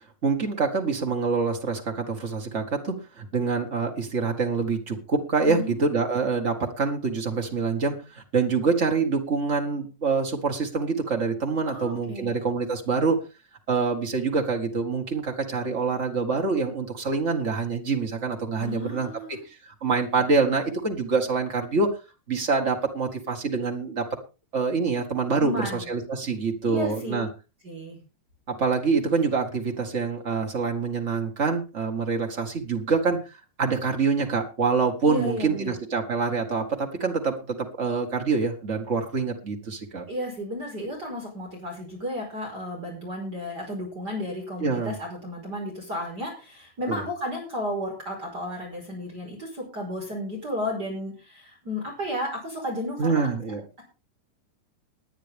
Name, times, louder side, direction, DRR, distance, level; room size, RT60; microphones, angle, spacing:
voice 1, 0.2-13.2 13.7-19.1 19.6-21.9 22.3-24.1 24.5-27.3 28.5-40.0 44.6-45.0 46.9-47.0 53.0-53.6, right 4 dB, 60° right, 2 dB, 0.7 m, -26 dB
voice 2, 11.7-12.4 18.6-19.4 25.4-25.9 26.6-27.2 27.6-28.0 35.0-35.7 40.1-53.3, left 1 dB, 25° right, -1 dB, 5.2 m, -33 dB
19.0 x 10.0 x 3.6 m, 0.31 s
omnidirectional pair, 4.8 m